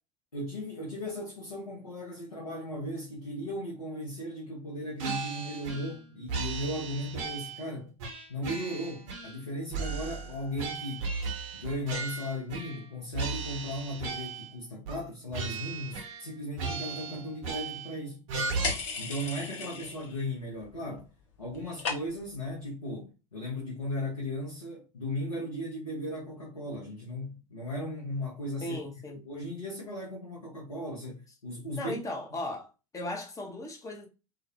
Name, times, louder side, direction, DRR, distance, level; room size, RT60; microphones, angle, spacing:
voice 1, 0.3-7.9 8.3-11.1 11.5-18.2 19.0-21.1 21.4-28.8 29.1-32.0, left 1 dB, 85° left, 0.6 m, -37 dB
sound 1, 5.0-6.0 6.3-7.7 8.0-9.4 9.7-12.9 13.1-14.5 14.9-15.1 15.3-16.3 16.6-17.9 18.3-18.7, right 4 dB, 55° right, 0.7 m, -36 dB
sound 2, 18.6-20.2 20.5-21.1 21.3-22.4, left 4 dB, 55° left, 0.8 m, -36 dB
voice 2, 28.6-29.2 31.7-34.1, left 1 dB, 20° left, 0.6 m, -37 dB
2.3 x 2.1 x 2.6 m
figure-of-eight pair, 75°, 18 cm